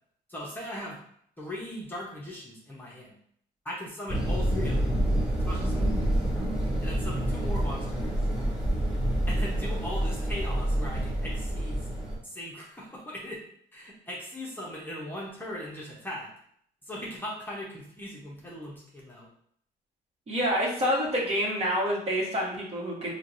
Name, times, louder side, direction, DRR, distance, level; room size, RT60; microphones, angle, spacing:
voice 1, 0.3-1.0 1.4-3.1 3.6-4.9 5.5-6.0 6.8-8.2 9.3-11.9 12.2-13.4 13.7-16.3 16.8-19.3, left 1 dB, 10° left, -4 dB, 0.7 m, -39 dB
sound 1, 4.1-12.2, right 1 dB, 5° right, 1.5 m, -28 dB
voice 2, 20.3-23.1, equal, 40° right, -3 dB, 1.2 m, -27 dB
4.5 x 2.2 x 2.6 m, 0.65 s
cardioid pair, 110°, 17 cm